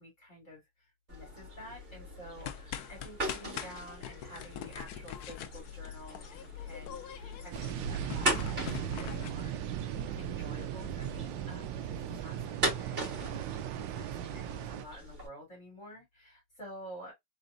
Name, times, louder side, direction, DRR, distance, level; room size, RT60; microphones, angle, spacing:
voice 1, 0.0-9.6 10.2-13.4 13.7-17.1, equal, 35° left, 2.7 m, -50 dB
sound 1, 1.1-15.3, right 1 dB, 25° right, 2.6 m, -40 dB
sound 2, 2.4-9.3, left 10 dB, 75° left, 0.8 m, -43 dB
sound 3, 7.5-14.9, right 10 dB, 75° right, 1.2 m, -37 dB
4.2 x 3.8 x 2.5 m
omnidirectional pair, 2.3 m